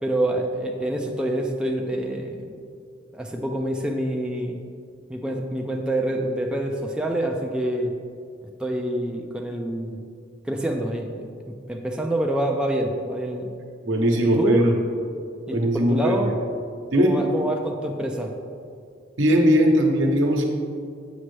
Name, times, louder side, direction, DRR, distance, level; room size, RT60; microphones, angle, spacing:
voice 1, 0.0-2.5 3.1-4.6 5.1-8.0 8.6-10.0 10.5-13.5 14.2-14.6 15.5-16.3 17.0-18.4, right 1 dB, 5° right, 1 dB, 0.3 m, -27 dB
voice 2, 13.8-14.7 15.5-16.3 16.9-17.2 19.2-20.5, equal, 85° right, 1 dB, 0.9 m, -19 dB
7.3 x 5.2 x 3.2 m, 2.3 s
head